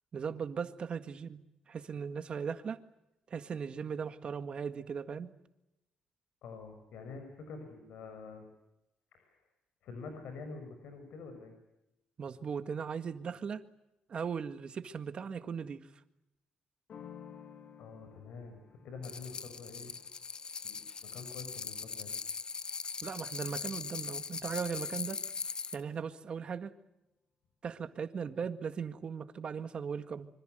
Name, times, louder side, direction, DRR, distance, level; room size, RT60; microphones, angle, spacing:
voice 1, 0.1-1.4 1.7-2.8 3.3-5.3 12.2-13.6 14.1-15.9 23.0-25.2 25.7-26.7 27.6-30.3, right 6 dB, 45° right, 9 dB, 1.8 m, -38 dB
voice 2, 6.4-8.5 9.1-9.4 9.8-11.5 17.8-19.9 20.6-22.1, left 4 dB, 85° left, 6 dB, 6.2 m, -47 dB
sound 1, 16.9-22.4, left 8 dB, 55° left, 3.6 m, -55 dB
sound 2, 19.0-25.8, left 5 dB, 35° left, 0.9 m, -40 dB
26.0 x 25.5 x 8.0 m, 0.90 s
cardioid pair, 130°, 2 cm